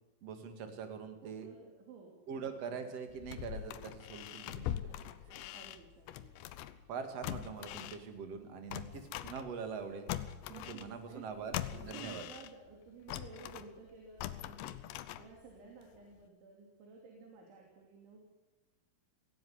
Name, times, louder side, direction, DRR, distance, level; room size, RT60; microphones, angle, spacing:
voice 1, 0.2-1.5 2.3-4.7 6.9-10.1 10.5-12.2, right 6 dB, 50° right, 7 dB, 2.1 m, -43 dB
voice 2, 1.2-2.4 2.7-2.8 4.5-6.3 10.5-11.2 11.7-14.8 15.2-18.2, right 5 dB, 65° right, 0 dB, 5.1 m, -54 dB
sound 1, 3.1-6.9 7.2-9.8 10.1-12.7 13.1-15.6 16.0-16.1, left 13 dB, 80° left, 2.4 m, -42 dB
17.5 x 17.0 x 9.6 m, 1.1 s
omnidirectional pair, 6.0 m